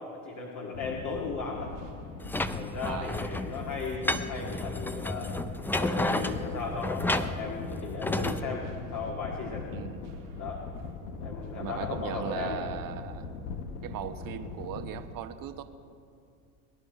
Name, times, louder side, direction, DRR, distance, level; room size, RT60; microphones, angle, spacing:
voice 1, 0.0-1.7 2.5-5.4 5.8-9.7 10.4-10.6 11.2-12.7, left 4 dB, 40° left, -1 dB, 2.0 m, -36 dB
sound 1, 0.7-15.0, left 4 dB, 90° left, 1.2 m, -40 dB
sound 2, 1.1-11.8, right 3 dB, 85° right, 2.1 m, -54 dB
sound 3, 2.2-8.4, left 1 dB, 5° left, 0.4 m, -32 dB
voice 2, 2.8-3.2 9.7-10.0 11.6-13.3 13.8-15.6, right 10 dB, 45° right, 9 dB, 1.1 m, -38 dB
23.0 x 10.5 x 4.5 m, 2.4 s
hypercardioid pair, 90°, 46 cm